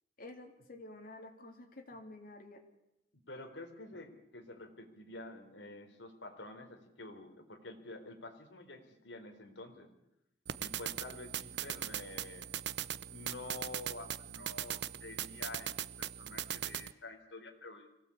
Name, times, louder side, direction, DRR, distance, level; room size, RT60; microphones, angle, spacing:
voice 1, 0.2-2.6, left 2 dB, 50° left, 3 dB, 3.2 m, -50 dB
voice 2, 3.3-9.9 10.6-12.5 13.1-17.9, left 2 dB, 75° left, 3 dB, 3.8 m, -49 dB
sound 1, 10.5-16.9, right 10 dB, 65° right, 0.8 m, -40 dB
25.0 x 17.0 x 8.6 m, 0.86 s
head